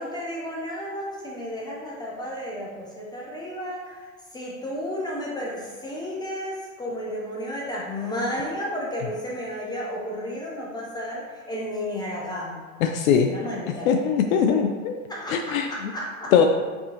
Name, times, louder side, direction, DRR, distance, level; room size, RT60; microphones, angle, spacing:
voice 1, 0.0-12.6 13.2-13.9 14.5-14.6 15.1-16.3, equal, 10° left, -4 dB, 0.4 m, -32 dB
voice 2, 12.8-13.3 13.9-15.0 15.3-15.7 16.3-16.5, left 7 dB, 75° left, 5 dB, 0.5 m, -20 dB
4.6 x 3.7 x 2.8 m, 1.4 s
hypercardioid pair, 115°, 42 cm